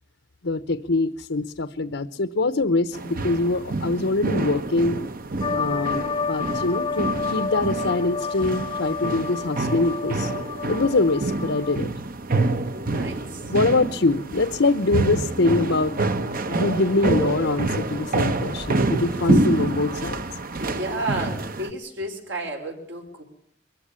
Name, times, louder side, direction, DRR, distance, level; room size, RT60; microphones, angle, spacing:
voice 1, 0.4-5.0 5.5-10.3 10.7-11.9 13.5-16.0 16.4-20.2, left 2 dB, 85° left, 11 dB, 0.9 m, -24 dB
sound 1, 2.9-21.7, right 2 dB, 50° right, 1.1 m, -27 dB
sound 2, 5.4-11.8, left 5 dB, 25° left, 0.8 m, -30 dB
voice 2, 12.7-13.5 19.3-19.4 20.6-23.2, right 1 dB, 75° right, 1 dB, 5.4 m, -32 dB
Squeak, 14.3-20.2, equal, ahead, 1.1 m, -42 dB
23.0 x 15.0 x 9.9 m, 0.68 s
head